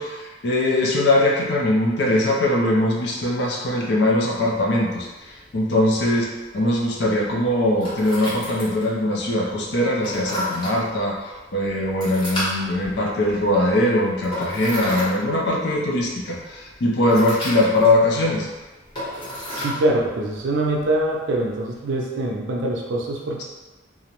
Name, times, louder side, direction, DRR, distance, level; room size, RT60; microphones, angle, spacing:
voice 1, 0.0-18.5, left 1 dB, 60° left, -2 dB, 0.5 m, -21 dB
sound 1, 4.3-21.8, left 1 dB, 25° left, 0.8 m, -35 dB
voice 2, 19.5-23.4, right 1 dB, 70° right, -1 dB, 0.4 m, -24 dB
2.4 x 2.0 x 2.9 m, 1.2 s
head